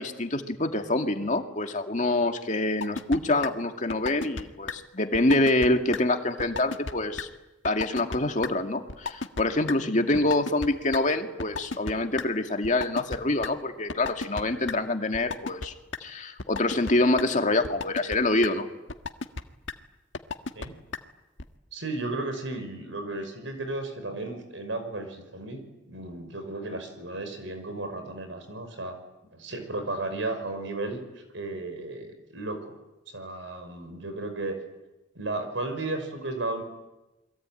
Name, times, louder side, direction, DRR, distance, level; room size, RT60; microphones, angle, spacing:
voice 1, 0.0-7.3 7.6-15.7 16.0-18.7, left 2 dB, 40° left, 5 dB, 2.3 m, -26 dB
sound 1, 2.8-3.2 3.4-3.5 3.9-4.4 4.7-4.8 5.1-5.7 5.9-6.0 6.4-6.9 7.2-7.3 7.6-8.2 8.4-8.5 8.9-9.4 9.7-9.8 10.1-10.7 10.9-11.0 11.4-12.2 12.6-13.5 13.9-14.4 14.7-14.8 15.1-15.7 15.9-16.0 16.4-16.9 17.2-17.3 17.6-18.2 18.4-18.5 18.9-19.4 19.7-19.8 20.1-20.7 20.9-21.0 21.4-21.5, left 4 dB, 75° left, 1.6 m, -32 dB
voice 2, 21.7-28.9 29.3-32.7 33.1-34.6 35.2-36.6, right 2 dB, 75° right, 7 dB, 5.7 m, -34 dB
28.5 x 22.5 x 9.2 m, 1.0 s
head